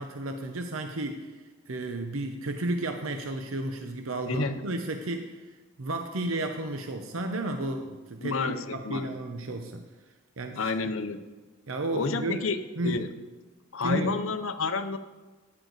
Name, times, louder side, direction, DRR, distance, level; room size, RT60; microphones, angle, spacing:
voice 1, 0.0-1.3 1.7-5.4 5.8-9.8 10.4-10.7 11.7-12.5 12.8-13.1 13.8-14.2, right 2 dB, 70° right, 5 dB, 0.8 m, -32 dB
voice 2, 4.3-4.6 8.2-9.1 10.6-11.2 11.9-13.1 13.7-15.0, left 4 dB, 70° left, 8 dB, 0.8 m, -30 dB
15.0 x 9.8 x 4.0 m, 1.2 s
head